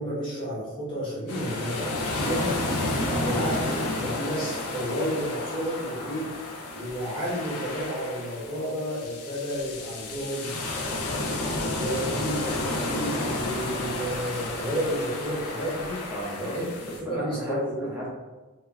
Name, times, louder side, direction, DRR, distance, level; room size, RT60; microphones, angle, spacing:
voice 1, 0.0-2.6 3.2-6.3 6.7-10.6 11.7-16.0 16.4-16.6 17.0-18.0, equal, 20° left, -8 dB, 0.9 m, -31 dB
sound 1, 1.3-17.0, left 2 dB, 90° left, 0.4 m, -31 dB
voice 2, 3.1-3.5 16.1-18.1, equal, 5° right, -7 dB, 0.6 m, -36 dB
2.2 x 2.1 x 3.4 m, 1.2 s
head